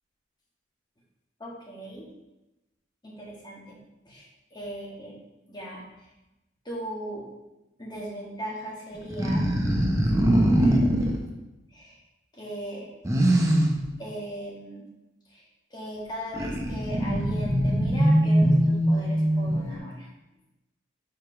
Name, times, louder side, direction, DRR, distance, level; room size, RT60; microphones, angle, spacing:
voice 1, 1.4-2.1 3.0-3.8 4.0-5.1 5.5-6.1 6.6-7.2 7.8-9.4 10.6-10.9 11.7-12.0 12.3-12.9 14.0-14.9 15.3-15.4 15.7-20.1, equal, 25° left, -4 dB, 1.7 m, -38 dB
sound 1, 8.9-11.2 13.0-13.8 16.3-19.8, right 1 dB, 15° right, 0.8 m, -22 dB
5.1 x 4.8 x 5.0 m, 1.0 s
head